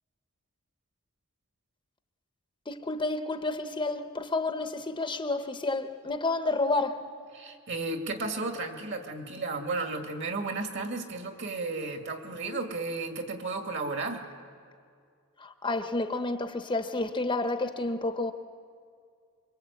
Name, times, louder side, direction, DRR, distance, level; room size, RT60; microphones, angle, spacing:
voice 1, 2.7-7.0 15.4-18.3, left 2 dB, 20° left, 0.9 m, -30 dB
voice 2, 7.3-14.3, right 3 dB, 55° right, 2.3 m, -33 dB
25.5 x 23.5 x 8.4 m
head